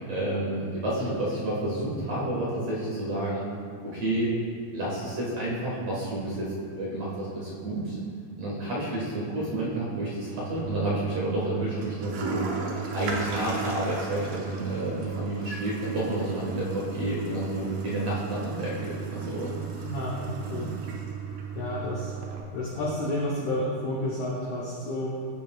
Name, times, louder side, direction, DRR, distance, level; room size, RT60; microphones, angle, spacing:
voice 1, 0.0-3.5 3.8-4.3 4.7-6.5 6.8-8.0 8.4-12.4 12.9-19.5 20.4-20.7, right 1 dB, 55° right, -7 dB, 2.1 m, -30 dB
Toilet flush, 10.4-22.4, right 5 dB, 70° right, 2.4 m, -35 dB
voice 2, 19.8-20.7 21.5-22.2 22.5-25.1, left 1 dB, 80° left, -4 dB, 1.7 m, -31 dB
12.5 x 8.5 x 2.3 m, 2.4 s
omnidirectional pair, 4.6 m